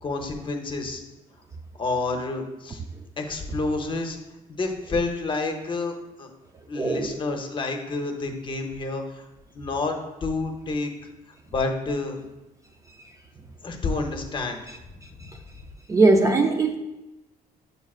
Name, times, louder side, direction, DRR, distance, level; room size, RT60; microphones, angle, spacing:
voice 1, 0.0-1.0 1.7-2.8 3.2-4.2 4.6-6.3 6.7-9.3 9.5-10.9 11.5-12.2 13.6-14.6, left 3 dB, 30° left, 4 dB, 0.8 m, -29 dB
voice 2, 6.8-7.2 15.9-16.8, right 3 dB, 20° right, 3 dB, 0.3 m, -19 dB
7.4 x 6.7 x 2.4 m, 1.0 s
cardioid pair, 150°, 16 cm